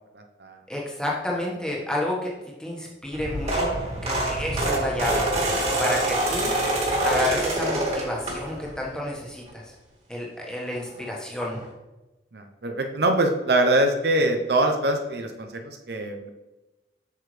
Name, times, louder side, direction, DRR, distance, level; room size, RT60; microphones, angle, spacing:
voice 1, 0.7-2.3 2.6-3.8 4.0-5.2 5.8-6.5 7.0-9.7 10.1-11.6, left 1 dB, 5° left, -3 dB, 1.4 m, -30 dB
sound 1, 3.1-8.8 9.2-9.5 10.7-10.8 11.0-11.2 11.5-11.6, right 1 dB, 35° right, 1.9 m, -26 dB
voice 2, 12.3-16.3, right 1 dB, 60° right, 4 dB, 0.7 m, -23 dB
8.0 x 6.9 x 3.3 m, 1.1 s
head